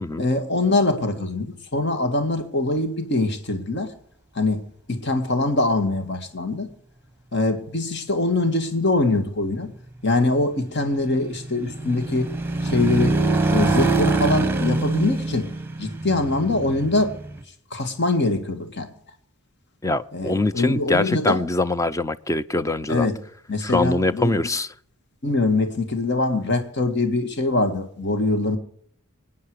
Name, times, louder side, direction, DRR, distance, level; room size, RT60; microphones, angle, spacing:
voice 1, 0.2-3.9 4.4-4.6 4.9-6.7 7.3-9.7 10.0-12.3 12.6-13.2 13.5-15.5 15.8-17.1 17.7-18.9 20.1-21.4 22.9-23.2 23.5-24.5 25.2-28.6, left 2 dB, 55° left, 8 dB, 1.9 m, -23 dB
sound 1, 10.8-17.4, right 3 dB, 10° right, 1.6 m, -24 dB
voice 2, 19.8-23.1 23.6-24.7, left 2 dB, 15° left, 14 dB, 0.5 m, -23 dB
25.5 x 9.6 x 4.8 m, 0.62 s
head